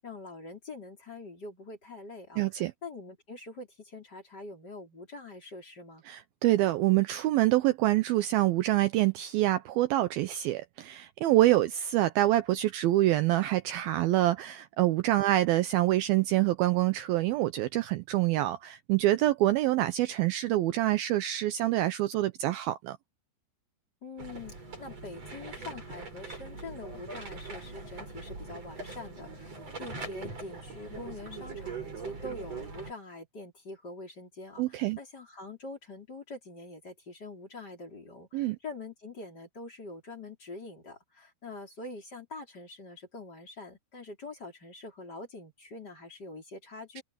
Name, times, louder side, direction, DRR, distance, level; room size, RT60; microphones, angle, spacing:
voice 1, 0.0-6.0 24.0-29.5 29.8-47.0, left 2 dB, 25° left, 4.4 m, -44 dB
voice 2, 2.4-2.7 6.1-23.0 34.6-35.0 38.3-38.6, right 15 dB, 85° right, 2.1 m, -26 dB
sound 1, 24.2-32.9, right 3 dB, 35° right, 7.6 m, -42 dB
omnidirectional pair, 5.2 m